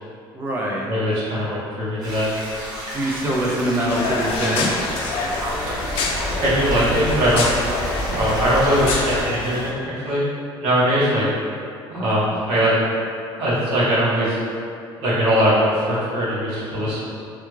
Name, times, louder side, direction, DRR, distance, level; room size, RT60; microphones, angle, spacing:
voice 1, 0.3-0.9 2.9-4.7, right 1 dB, 20° right, -3 dB, 0.3 m, -23 dB
voice 2, 0.9-2.3 6.4-7.5 8.0-10.2 10.6-11.3 11.9-12.7 13.3-14.4 15.0-17.0, equal, 75° right, -9 dB, 1.1 m, -20 dB
sound 1, 2.0-9.2, equal, 40° right, 0.8 m, -30 dB
sound 2, 3.9-9.7, left 3 dB, 70° left, 0.4 m, -27 dB
3.4 x 2.2 x 3.0 m, 2.5 s
cardioid pair, 165°, 10 cm